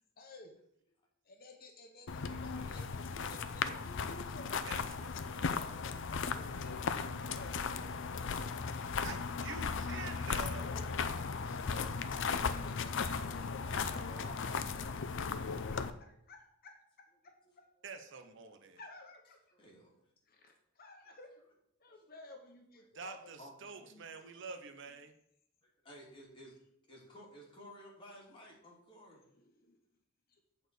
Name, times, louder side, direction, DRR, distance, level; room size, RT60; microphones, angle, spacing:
voice 1, 0.2-0.6 1.2-5.1 5.6-8.6 10.3-10.9 11.4-14.0 14.5-14.6 15.5-17.6 18.8-19.4 20.3-21.4 21.8-23.3 23.8-24.3 29.1-29.8 30.3-30.4, left 2 dB, 50° left, 3 dB, 1.1 m, -55 dB
sound 1, 2.1-15.9, left 5 dB, 65° left, 0.5 m, -37 dB
voice 2, 2.3-3.8 13.6-15.6 19.5-19.9 21.1-21.2 23.4-23.5 25.6-26.6 26.9-29.2, equal, 25° left, -3 dB, 2.5 m, -55 dB
voice 3, 4.6-5.6 9.0-10.6 17.8-18.8 22.9-25.1, right 5 dB, 65° right, 7 dB, 0.9 m, -47 dB
8.1 x 4.4 x 6.7 m, 0.73 s
head